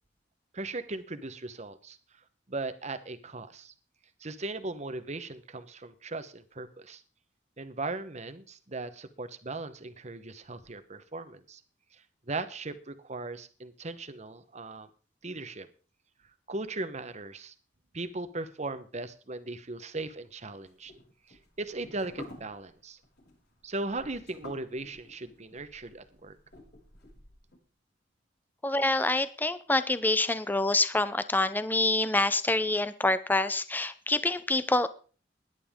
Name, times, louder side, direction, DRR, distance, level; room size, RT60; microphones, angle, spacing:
voice 1, 0.5-2.0 2.5-3.7 4.2-7.0 7.6-11.6 11.9-14.9 15.2-15.7 16.5-17.5 17.9-20.9 21.3-23.0 23.6-26.4, right 2 dB, 40° right, 11 dB, 1.1 m, -38 dB
sound 1, 20.5-27.6, left 1 dB, 60° left, 6.0 m, -51 dB
voice 2, 28.6-34.9, left 2 dB, 10° left, 13 dB, 0.6 m, -26 dB
17.5 x 11.0 x 3.7 m, 0.39 s
head